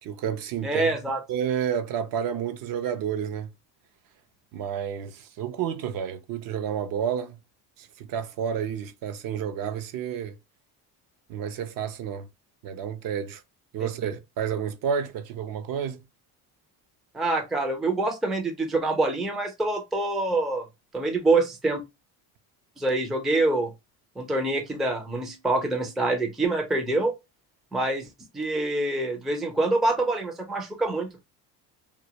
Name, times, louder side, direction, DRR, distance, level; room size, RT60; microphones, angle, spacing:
voice 1, 0.0-0.9 1.3-3.5 4.5-7.4 7.8-10.4 11.3-12.3 12.6-13.4 13.7-16.0, right 8 dB, 55° right, 0.5 m, -30 dB
voice 2, 0.6-1.2 13.8-13.9 17.1-20.7 20.9-21.8 22.8-23.7 24.2-27.1 27.7-28.1 28.3-31.2, right 2 dB, ahead, 0.3 m, -25 dB
2.2 x 2.2 x 2.7 m
cardioid pair, 110°, 41 cm